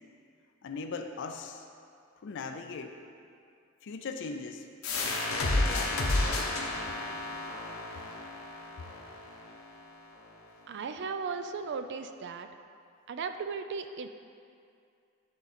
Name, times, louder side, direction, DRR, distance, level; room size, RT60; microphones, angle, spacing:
voice 1, 0.6-1.7 2.2-3.0 3.8-4.7 5.0-6.1, left 4 dB, 60° left, 5 dB, 0.4 m, -39 dB
sound 1, 4.8-10.2, left 2 dB, 80° left, 1.0 m, -32 dB
voice 2, 10.7-12.5 13.1-14.1, right 5 dB, 55° right, 8 dB, 0.4 m, -36 dB
10.5 x 3.9 x 4.2 m, 2.4 s
head